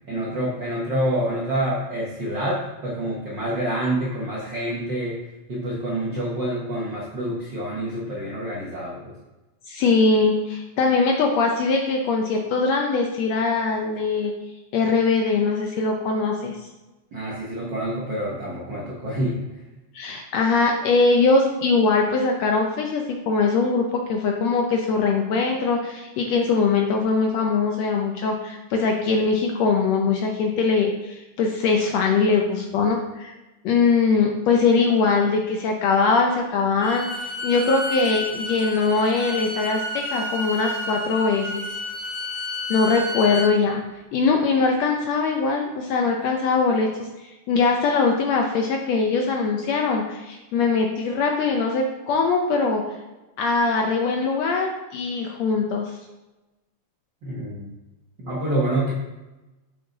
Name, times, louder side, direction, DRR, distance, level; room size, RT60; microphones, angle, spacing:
voice 1, 0.1-5.2 5.5-9.1 17.1-19.5 57.2-57.7 58.2-58.9, right 1 dB, 65° right, -5 dB, 1.1 m, -27 dB
voice 2, 9.7-14.3 14.7-16.6 19.9-33.3 33.6-41.7 42.7-43.8 44.1-46.9 47.2-52.8 53.4-56.0, left 4 dB, 75° left, 2 dB, 1.6 m, -21 dB
Bowed string instrument, 36.8-43.5, left 1 dB, 15° right, 1.0 m, -31 dB
7.1 x 5.5 x 3.9 m, 1.1 s
omnidirectional pair, 3.6 m